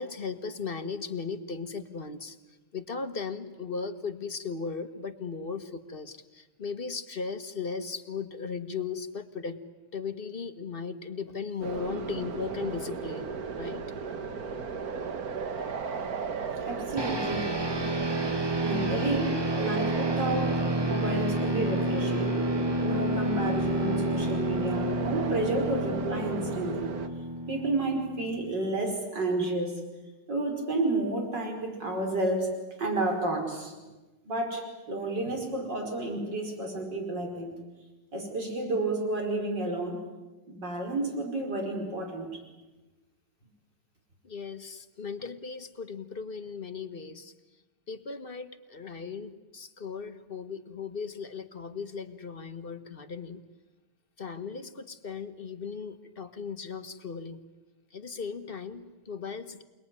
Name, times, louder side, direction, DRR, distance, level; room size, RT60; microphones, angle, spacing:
voice 1, 0.0-2.4 2.7-9.6 9.9-13.8 44.2-47.3 47.9-53.4 54.2-57.4 57.9-59.6, left 5 dB, 35° left, 9 dB, 1.4 m, -37 dB
sound 1, 11.6-27.1, right 5 dB, 55° right, 1.8 m, -35 dB
voice 2, 16.6-17.6 18.6-22.3 22.8-26.9 27.5-29.8 30.3-32.5 32.8-33.7 34.3-37.5 38.1-40.0 40.5-42.3, right 2 dB, 75° right, 2 dB, 5.8 m, -31 dB
sound 2, 17.0-28.7, right 1 dB, 15° right, 0.9 m, -30 dB
28.5 x 20.5 x 9.7 m, 1.1 s
omnidirectional pair, 1.9 m